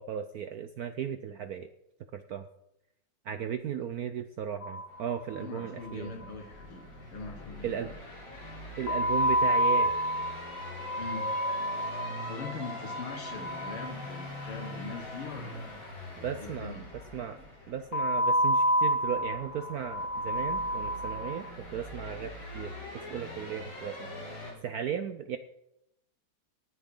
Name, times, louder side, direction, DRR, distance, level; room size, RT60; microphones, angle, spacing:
voice 1, 0.0-1.7 2.1-2.4 3.3-6.1 7.6-7.9 8.8-9.9 16.2-16.8 17.1-17.4 17.7-24.1 24.6-25.4, right 8 dB, 85° right, 9 dB, 0.8 m, -36 dB
sound 1, 4.6-5.6 5.9-6.0 6.2-6.3 8.9-15.0 17.9-21.5, equal, 45° left, 1.3 m, -29 dB
sound 2, 4.9-24.5, left 1 dB, 65° left, 4.6 m, -44 dB
voice 2, 5.4-8.0 11.0-11.3 12.3-15.8 16.4-16.9, left 4 dB, 80° left, 4 dB, 2.4 m, -42 dB
18.5 x 11.0 x 3.8 m, 0.84 s
omnidirectional pair, 2.3 m